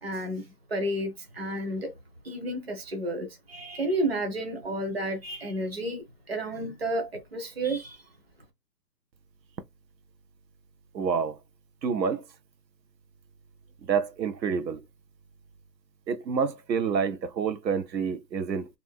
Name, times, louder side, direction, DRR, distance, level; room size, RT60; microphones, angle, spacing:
voice 1, 0.0-1.9 2.2-8.0, right 1 dB, 40° right, 0.7 m, -31 dB
voice 2, 10.9-11.4 11.8-12.2 13.9-14.8 16.1-18.7, right 6 dB, 80° right, 0.8 m, -28 dB
2.5 x 2.2 x 3.4 m
hypercardioid pair, 175°, 50 cm